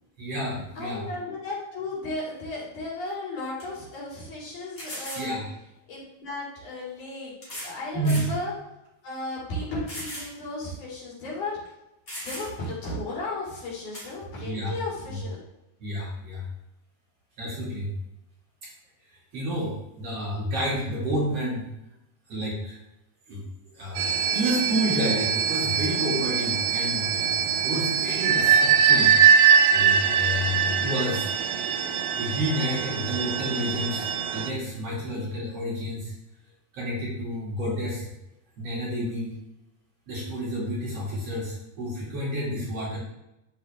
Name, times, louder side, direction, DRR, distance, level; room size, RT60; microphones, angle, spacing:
voice 1, 0.2-1.0 5.2-5.5 7.9-8.2 14.4-14.7 15.1-15.2 15.8-16.4 17.4-17.9 19.3-21.6 22.3-22.8 23.3-23.4 23.8-27.3 27.6-31.3 32.2-36.1 36.7-38.0 38.6-39.3 40.1-43.0, equal, 50° right, -6 dB, 3.2 m, -30 dB
voice 2, 0.7-5.3 5.9-8.5 9.0-11.6 12.2-15.4, left 2 dB, 65° left, -5 dB, 4.0 m, -34 dB
sound 1, 3.0-3.1 3.6-3.7 4.8-5.3 6.4-6.5 7.4-7.8 8.0-8.3 8.8-8.9 9.9-10.3 10.7-10.8 11.6-11.7 12.1-12.7 13.9-14.1, equal, 35° left, 3.1 m, -37 dB
sound 2, 24.0-34.5, right 7 dB, 85° right, 2.5 m, -22 dB
13.0 x 5.0 x 3.5 m, 0.90 s
omnidirectional pair, 3.8 m